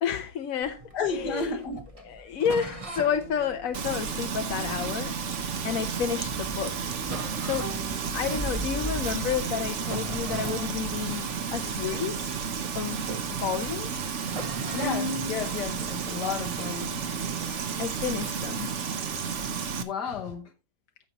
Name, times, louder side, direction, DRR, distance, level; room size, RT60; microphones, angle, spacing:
voice 1, 0.0-1.6 2.0-5.1 5.6-6.9 7.4-7.8 8.1-12.4 12.7-14.0 17.8-18.7, left 8 dB, 65° left, 1.1 m, -31 dB
Thunder, 0.6-18.7, equal, 5° left, 0.9 m, -44 dB
sound 1, 0.7-5.6 6.2-6.3 6.6-6.7 7.0-8.9 9.3-9.5 9.8-13.2 13.4-13.6 14.2-17.3, right 1 dB, 25° right, 1.0 m, -40 dB
voice 2, 0.9-1.8 14.7-17.1 19.8-20.5, left 5 dB, 85° left, 2.0 m, -32 dB
Frying (food), 3.7-19.8, right 6 dB, 50° right, 1.2 m, -32 dB
14.0 x 6.8 x 2.9 m
omnidirectional pair, 1.7 m